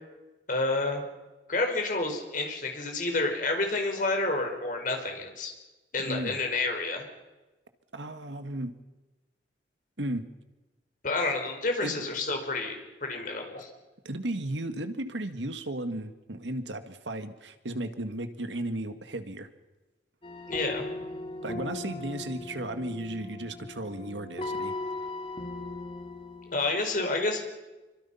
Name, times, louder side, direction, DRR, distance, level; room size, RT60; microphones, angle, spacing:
voice 1, 0.5-1.0 1.5-5.5 5.9-7.0 11.0-13.7 20.5-20.8 26.5-27.4, left 2 dB, 45° left, 3 dB, 5.4 m, -29 dB
voice 2, 6.0-6.4 7.9-8.8 10.0-10.3 11.8-12.0 14.1-19.5 21.4-24.7, right 1 dB, 85° right, 8 dB, 1.9 m, -35 dB
sound 1, 20.2-26.8, left 2 dB, 30° left, 2.2 m, -38 dB
27.5 x 25.0 x 5.8 m, 1.1 s
head